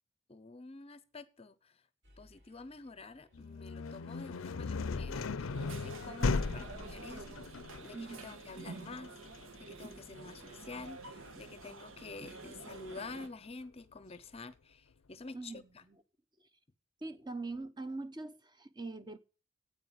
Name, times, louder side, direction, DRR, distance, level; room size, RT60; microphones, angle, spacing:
voice 1, 0.3-1.8 2.2-7.4 7.8-15.8, left 3 dB, 30° left, 0.7 m, -49 dB
sound 1, 2.0-7.3, left 1 dB, 60° right, 5.3 m, -65 dB
sound 2, 3.3-13.1, left 4 dB, 80° left, 0.5 m, -38 dB
sound 3, 5.5-13.3, right 3 dB, 80° right, 1.7 m, -49 dB
voice 2, 7.9-8.4 15.3-16.0 17.0-19.2, right 3 dB, 20° right, 0.8 m, -43 dB
9.1 x 8.5 x 8.0 m
head